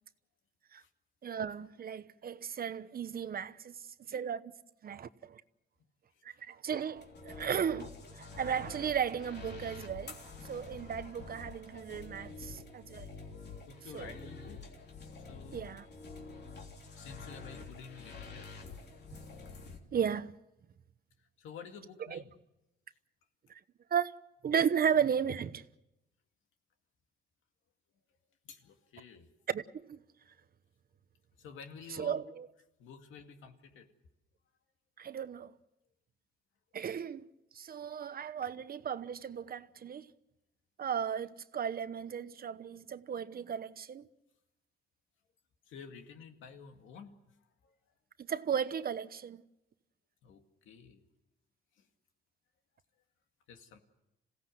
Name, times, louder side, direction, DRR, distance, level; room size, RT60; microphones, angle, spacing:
voice 1, 1.2-3.8 4.1-4.5 4.8-5.4 6.4-13.1 13.9-14.2 15.5-15.9 19.9-20.3 22.1-22.2 23.9-24.1 24.4-25.6 29.5-30.0 31.9-32.5 35.0-35.5 36.7-37.3 37.5-40.1 40.8-44.0 48.3-49.4, right 8 dB, 50° right, 1.0 m, -35 dB
sound 1, 7.0-19.8, left 4 dB, 55° left, 3.3 m, -48 dB
voice 2, 13.6-14.6 15.3-15.8 17.0-18.5 21.4-22.3 28.4-29.3 31.4-32.3 32.8-33.9 45.7-47.2 47.6-47.7 50.2-51.0 51.8-51.9 53.5-53.8, left 6 dB, 85° left, 2.2 m, -50 dB
27.0 x 16.5 x 7.8 m
cardioid pair, 90°, 20 cm